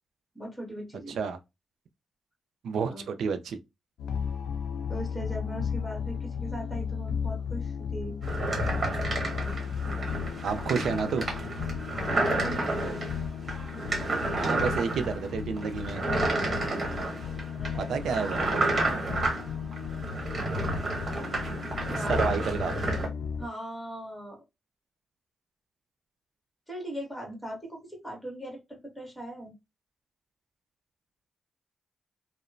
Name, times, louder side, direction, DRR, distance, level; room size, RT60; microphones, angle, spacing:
voice 1, 0.3-1.2 2.9-3.0 4.9-8.2 11.9-13.1 17.5-17.9 19.0-19.3 19.6-19.7 21.9-22.2 23.4-24.4 26.7-29.5, right 1 dB, 5° left, 1.5 m, -39 dB
voice 2, 2.6-3.6 10.4-11.3 14.4-16.0 17.8-18.4 22.1-22.7, right 6 dB, 80° right, 0.4 m, -30 dB
sound 1, 4.0-23.5, left 7 dB, 85° left, 0.3 m, -35 dB
sound 2, 8.2-23.1, right 2 dB, 45° right, 1.2 m, -31 dB
2.8 x 2.1 x 2.4 m
cardioid pair, 75°, 0 cm